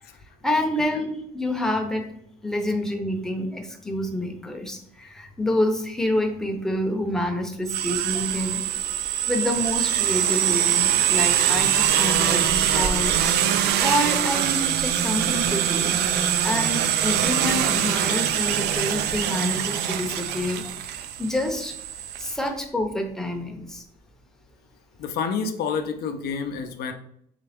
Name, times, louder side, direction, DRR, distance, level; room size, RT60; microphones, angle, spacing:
voice 1, 0.4-2.1 2.4-8.6 9.3-16.0 16.4-21.7 22.2-23.8, left 1 dB, 5° left, 3 dB, 0.6 m, -28 dB
sound 1, 7.7-22.3, right 10 dB, 75° right, 0.4 m, -23 dB
voice 2, 25.0-26.9, left 5 dB, 70° left, 7 dB, 0.5 m, -28 dB
3.8 x 3.3 x 3.4 m, 0.70 s
cardioid pair, 110°, 17 cm